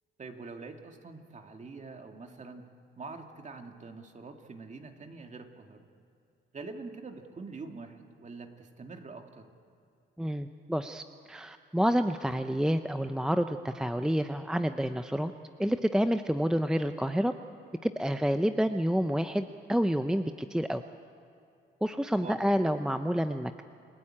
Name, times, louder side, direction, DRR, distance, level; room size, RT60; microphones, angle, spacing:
voice 1, 0.2-2.7 3.0-5.9 6.5-9.5 22.2-22.5, right 4 dB, 35° right, 4 dB, 2.3 m, -45 dB
voice 2, 10.2-11.0 11.3-15.3 15.6-17.3 17.8-20.8 21.8-23.6, equal, 5° right, 9 dB, 0.7 m, -28 dB
28.5 x 16.5 x 8.8 m, 2.6 s
cardioid pair, 90°, 20 cm